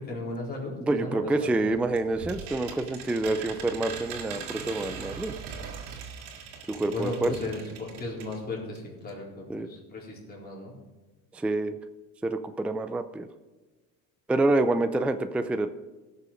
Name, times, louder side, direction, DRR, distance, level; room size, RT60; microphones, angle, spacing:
voice 1, 0.0-1.7 6.8-10.7, left 2 dB, 25° left, -5 dB, 4.3 m, -36 dB
voice 2, 0.8-5.3 6.7-7.3 9.5-9.7 11.3-11.8 12.2-13.3 14.3-15.7, right 2 dB, 5° right, 9 dB, 0.4 m, -27 dB
sound 1, 1.5-8.4 8.7-8.8 9.1-9.2, right 6 dB, 80° right, 2.4 m, -41 dB
17.5 x 6.9 x 5.0 m, 1.2 s
cardioid pair, 135°, 39 cm